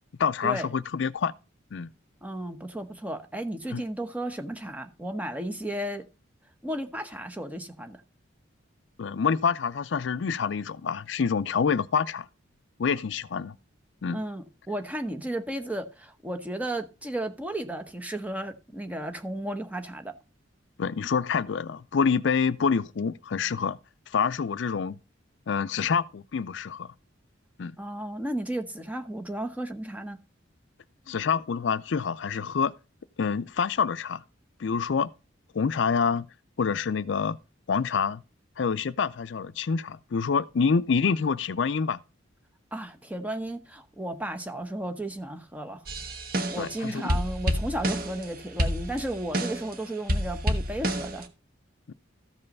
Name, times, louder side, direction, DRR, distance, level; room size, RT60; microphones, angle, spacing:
voice 1, 0.2-1.3 1.7-1.9 3.7-3.8 9.0-12.3 12.8-13.6 14.0-14.2 20.8-23.8 24.1-25.0 25.5-26.9 27.6-27.8 31.1-32.7 33.2-34.2 34.6-35.1 35.5-36.3 36.6-37.4 37.7-38.2 38.6-42.0 46.6-47.0 51.9-52.0, left 6 dB, 65° left, 0.4 m, -27 dB
voice 2, 2.2-6.0 6.6-8.0 14.1-20.2 27.8-30.2 42.7-45.8 46.5-51.3, right 1 dB, 10° right, 0.9 m, -34 dB
sound 1, 45.9-46.8 47.1-48.3 48.6-49.8 50.1-51.2, equal, 45° right, 1.2 m, -29 dB
13.5 x 5.5 x 5.3 m
head